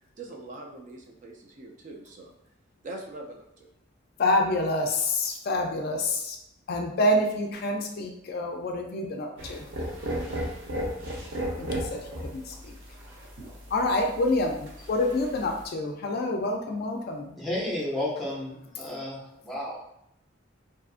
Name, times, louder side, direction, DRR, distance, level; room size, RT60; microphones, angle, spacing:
voice 1, 0.2-2.3 2.8-3.7, right 2 dB, 40° right, 0 dB, 0.3 m, -42 dB
voice 2, 4.2-6.4 6.7-9.7 11.6-12.7 13.7-17.4, left 1 dB, 50° left, 2 dB, 0.3 m, -27 dB
sound 1, 9.4-15.6, equal, 85° right, 0.7 m, -35 dB
voice 3, 17.4-19.8, left 1 dB, ahead, -6 dB, 0.6 m, -32 dB
2.6 x 2.4 x 2.4 m, 0.79 s
head